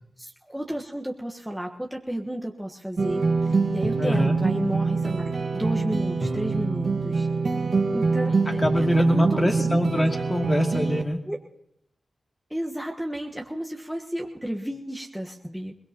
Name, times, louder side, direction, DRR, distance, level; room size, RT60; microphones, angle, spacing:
voice 1, 0.2-7.3 7.9-8.9 9.1-10.1 11.3-11.4 12.5-15.7, equal, 5° right, 0 dB, 1.3 m, -32 dB
sound 1, 3.0-11.0, right 4 dB, 70° right, 1.5 m, -25 dB
voice 2, 4.0-4.4 8.6-11.2, left 1 dB, 30° left, 2 dB, 2.6 m, -24 dB
22.0 x 19.0 x 2.9 m, 0.77 s
cardioid pair, 40°, 0 cm